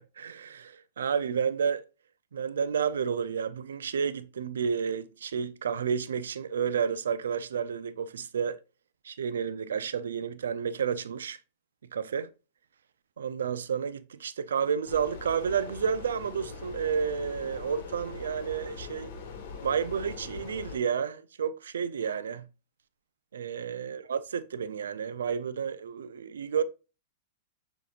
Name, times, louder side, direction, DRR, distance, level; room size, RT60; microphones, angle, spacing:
voice 1, 0.2-1.8 2.3-8.6 9.0-11.4 11.9-12.3 13.2-19.1 19.6-22.5 23.3-26.6, right 7 dB, 80° right, 0.4 m, -31 dB
sound 1, 14.9-20.8, left 5 dB, 60° left, 1.4 m, -42 dB
7.0 x 3.0 x 2.4 m
hypercardioid pair, 120°, 0 cm